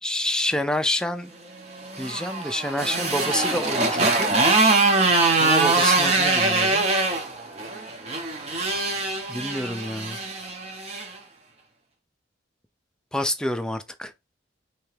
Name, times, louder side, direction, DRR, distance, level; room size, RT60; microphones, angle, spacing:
voice 1, 0.0-1.3 2.0-5.0 5.4-6.9 9.3-10.2 13.1-14.1, left 1 dB, 5° left, 0.3 m, -28 dB
Motorcycle, 1.7-11.1, right 3 dB, 35° right, 0.7 m, -23 dB
3.3 x 2.9 x 3.2 m
head